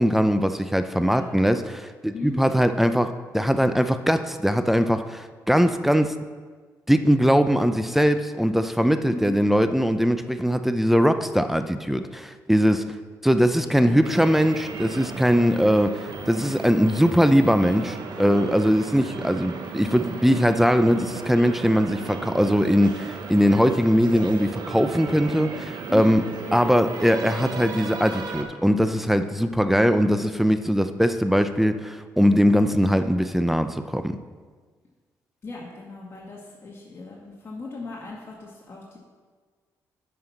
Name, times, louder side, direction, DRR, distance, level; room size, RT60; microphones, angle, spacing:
voice 1, 0.0-6.2 6.9-12.9 13.2-26.2 26.5-34.1, equal, 5° right, 9 dB, 0.6 m, -21 dB
voice 2, 1.0-1.3 2.1-2.4 9.0-9.4 13.8-14.0 25.9-26.7 26.9-27.0 35.4-39.0, left 3 dB, 35° left, -4 dB, 1.8 m, -37 dB
sound 1, 14.0-28.4, right 4 dB, 70° right, 1.0 m, -35 dB
9.5 x 5.7 x 5.9 m, 1.5 s
cardioid pair, 70°, 7 cm